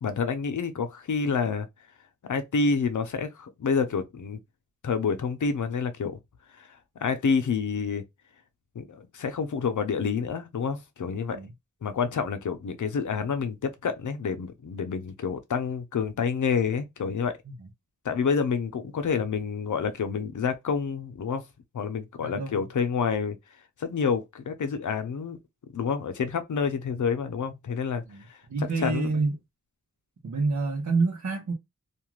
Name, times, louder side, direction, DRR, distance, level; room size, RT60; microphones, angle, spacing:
voice 1, 0.0-1.7 2.3-4.4 4.8-6.2 6.6-6.7 7.0-8.0 8.8-11.4 11.8-17.4 18.0-21.4 21.7-23.4 23.8-25.4 25.7-28.0 28.3-29.1, left 5 dB, 75° left, 0.6 m, -28 dB
voice 2, 22.2-22.6 28.1-28.2 28.5-29.3 30.2-31.5, right 3 dB, 65° right, 0.8 m, -27 dB
2.5 x 2.4 x 3.0 m
cardioid pair, 55°, 30 cm